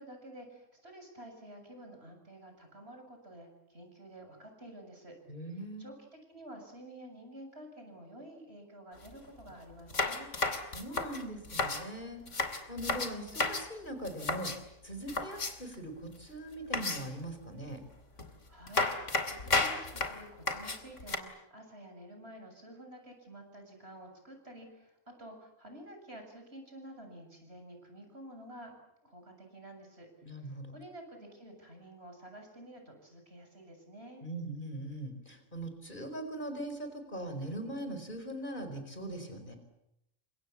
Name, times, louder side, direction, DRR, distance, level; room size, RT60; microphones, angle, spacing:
voice 1, 0.0-6.0 6.3-10.4 18.3-28.7 29.0-30.1 30.4-34.2, right 1 dB, 55° right, 4 dB, 7.7 m, -50 dB
voice 2, 5.3-5.9 10.7-12.2 12.7-14.5 14.8-17.8 30.2-30.7 34.2-39.6, right 1 dB, 40° left, 7 dB, 4.7 m, -41 dB
sound 1, 8.9-9.1 9.4-9.5 9.9-11.9 12.3-13.7 14.0-14.6 15.1-15.7 16.7-17.3 18.2-18.3 18.7-21.2, left 3 dB, 70° left, 3.0 m, -33 dB
30.0 x 25.5 x 7.3 m, 0.84 s
omnidirectional pair, 1.3 m